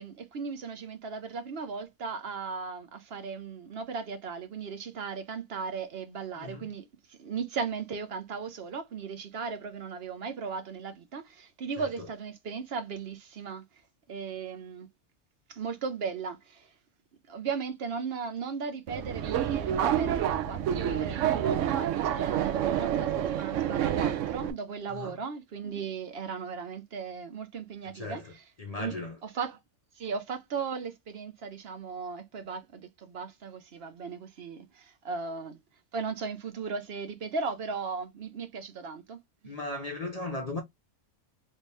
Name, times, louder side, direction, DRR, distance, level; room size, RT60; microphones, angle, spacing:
voice 1, 0.0-13.6 14.1-14.9 15.5-16.7 17.3-28.5 28.8-29.0 29.2-29.6 30.0-35.6 35.9-39.2, right 5 dB, 60° right, 0.8 m, -37 dB
voice 2, 6.4-6.7 11.8-11.9 24.9-25.1 27.9-28.3 28.6-29.2 39.4-40.6, left 2 dB, 45° left, 0.5 m, -36 dB
Subway metro underground, 18.9-24.5, right 10 dB, 90° right, 1.0 m, -28 dB
3.1 x 2.8 x 3.2 m
omnidirectional pair, 1.2 m